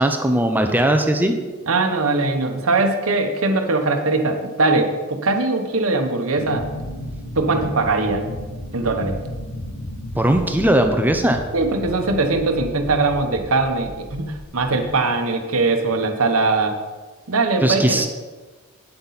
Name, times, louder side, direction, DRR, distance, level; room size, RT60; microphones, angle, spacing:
voice 1, 0.0-1.3 10.1-11.4 17.6-18.1, right 1 dB, 10° right, 5 dB, 0.6 m, -18 dB
voice 2, 1.7-6.7 7.4-8.3 8.7-9.2 11.5-16.8 17.3-18.1, right 3 dB, 70° right, 5 dB, 1.0 m, -21 dB
sound 1, 6.4-14.9, equal, 70° left, 1.1 m, -34 dB
8.8 x 8.2 x 4.1 m, 1.3 s
head